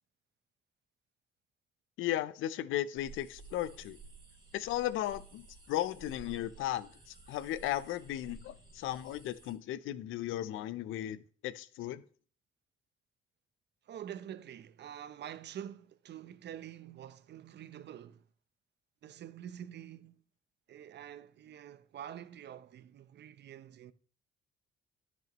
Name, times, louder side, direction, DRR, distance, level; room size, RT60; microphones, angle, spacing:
voice 1, 2.0-4.0 4.5-12.0, left 13 dB, 90° left, 0.6 m, -36 dB
sound 1, 3.0-9.5, right 3 dB, 20° right, 3.2 m, -54 dB
voice 2, 13.8-18.3 19.0-20.2 20.7-23.9, right 10 dB, 60° right, 0.7 m, -47 dB
13.5 x 6.3 x 3.0 m
cardioid pair, 90°, 20 cm